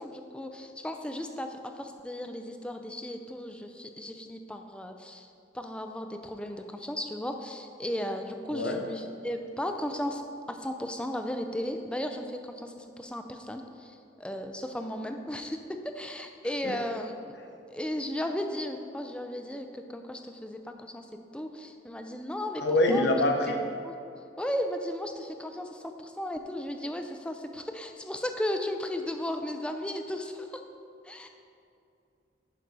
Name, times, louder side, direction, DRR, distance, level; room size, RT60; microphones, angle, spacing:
voice 1, 0.0-5.3 5.5-15.6 16.0-17.3 17.7-21.1 21.3-23.1 23.8-24.0 24.4-30.6 31.0-31.3, left 1 dB, 5° left, 5 dB, 0.4 m, -35 dB
voice 2, 22.6-23.7, left 1 dB, 65° left, 2 dB, 1.0 m, -24 dB
10.5 x 5.3 x 4.7 m, 2.6 s
head